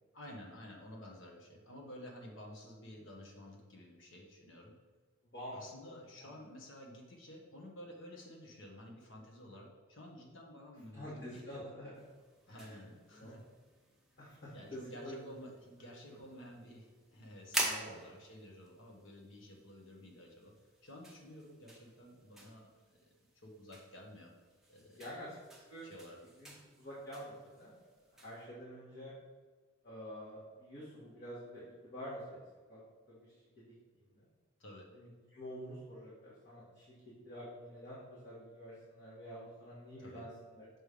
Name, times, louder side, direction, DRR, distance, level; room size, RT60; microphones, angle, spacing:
voice 1, 0.1-4.7 5.5-11.6 12.5-13.4 14.5-20.5 20.8-24.3 24.7-25.1 25.8-26.2 34.6-34.9 40.0-40.2, left 1 dB, 65° left, 0 dB, 1.0 m, -52 dB
voice 2, 5.9-6.3 10.9-12.0 12.5-12.8 13.1-13.4 14.2-15.2 17.6-17.9 25.0-25.3 25.7-25.9 26.4-27.7 28.2-29.1 29.8-32.4 32.7-32.8 33.1-33.2 33.7-33.8 34.2-34.3 34.9-36.9 37.2-40.6, equal, 45° left, -10 dB, 1.6 m, -48 dB
sound 1, 11.9-28.4, right 1 dB, ahead, 0.8 m, -47 dB
6.1 x 3.3 x 5.1 m, 1.4 s
head